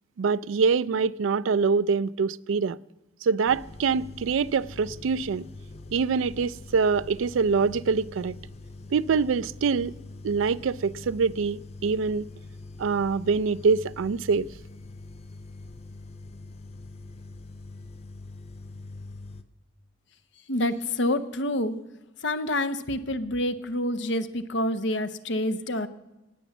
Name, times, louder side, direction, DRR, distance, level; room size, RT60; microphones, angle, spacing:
voice 1, 0.2-2.8 3.2-5.5 5.9-8.3 8.9-9.9 10.2-12.3 12.8-14.5, right 5 dB, 75° right, 0.4 m, -24 dB
sound 1, 3.5-19.4, left 2 dB, 30° left, 0.7 m, -44 dB
voice 2, 20.5-21.8 22.2-25.9, left 1 dB, 65° left, 0.8 m, -27 dB
18.5 x 7.0 x 7.1 m
head